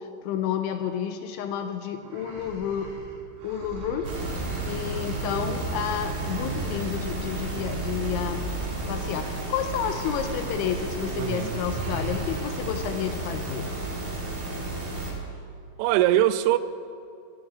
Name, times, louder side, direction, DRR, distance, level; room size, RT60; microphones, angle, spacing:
voice 1, 0.0-2.9 3.4-4.1 4.7-8.5 8.9-13.7, left 8 dB, 80° left, 2.8 m, -30 dB
sound 1, 2.0-9.2 9.6-10.8 11.1-11.3 11.6-12.8, right 3 dB, 70° right, 4.3 m, -40 dB
sound 2, 4.0-15.1, right 2 dB, 45° right, 3.1 m, -32 dB
voice 2, 11.2-11.6 15.8-16.6, right 13 dB, 90° right, 3.2 m, -22 dB
22.0 x 12.5 x 3.7 m
omnidirectional pair, 5.8 m